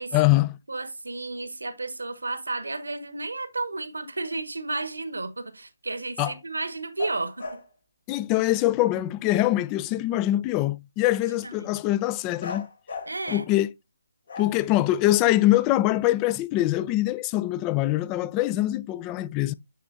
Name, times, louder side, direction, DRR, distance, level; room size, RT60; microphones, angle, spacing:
voice 1, 0.1-0.6 6.2-6.3 8.1-12.7 13.3-13.7 14.4-19.5, left 15 dB, 20° left, 0.4 m, -23 dB
voice 2, 0.7-7.6 11.3-11.7 13.1-13.4, right 3 dB, 85° right, 1.3 m, -32 dB
sound 1, 7.0-7.7 12.4-13.5 14.3-15.3, left 4 dB, 60° left, 1.7 m, -37 dB
10.0 x 4.4 x 2.5 m
figure-of-eight pair, 150°, 0 cm